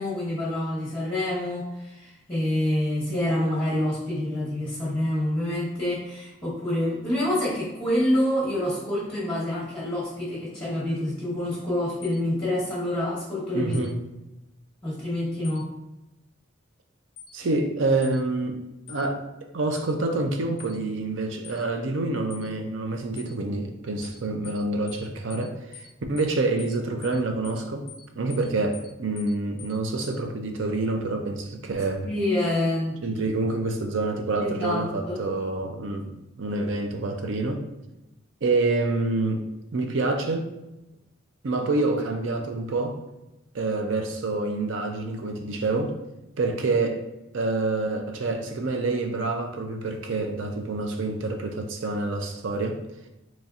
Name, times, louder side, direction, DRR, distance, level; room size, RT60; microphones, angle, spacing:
voice 1, 0.0-13.8 14.8-15.7 32.0-33.0 34.4-35.2, left 1 dB, 10° left, -9 dB, 1.0 m, -27 dB
sound 1, 12.0-12.2 13.7-13.9 15.4-15.6 17.2-17.3 18.0-18.2 18.9-19.0 19.7-19.9 20.6-20.8 21.4-21.6 22.3-22.5 23.2-23.3 24.0-24.2 24.4-24.6 24.9-25.0 25.3-25.5 25.7-25.9 26.2-26.3 26.6-26.8 27.0-27.2 27.4-27.6 27.9-28.0 28.3-28.5 28.7-28.9 29.2-29.3 29.6-29.8 30.0-30.2, left 10 dB, 85° left, 0.4 m, -45 dB
voice 2, 13.5-14.0 17.3-19.2 19.5-27.8 28.2-32.0 33.0-37.6 38.4-39.5 39.7-40.5 41.4-43.0 43.5-46.0 46.4-47.0 47.3-52.8, right 2 dB, 65° right, 4 dB, 0.5 m, -27 dB
4.2 x 3.0 x 2.4 m, 0.94 s
head